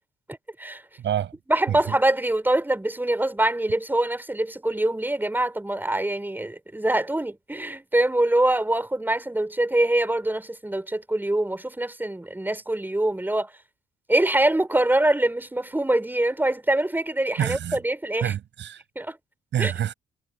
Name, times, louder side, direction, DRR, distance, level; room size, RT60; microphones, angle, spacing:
voice 1, 1.0-1.3 1.7-1.8 17.4-17.8 18.2-18.8 19.5-19.9, right 10 dB, 70° right, 6.2 m, -27 dB
voice 2, 1.5-13.5 14.1-18.3 19.0-19.2 19.6-19.7, right 1 dB, 10° right, 6.0 m, -24 dB
cardioid pair, 90°, 20 cm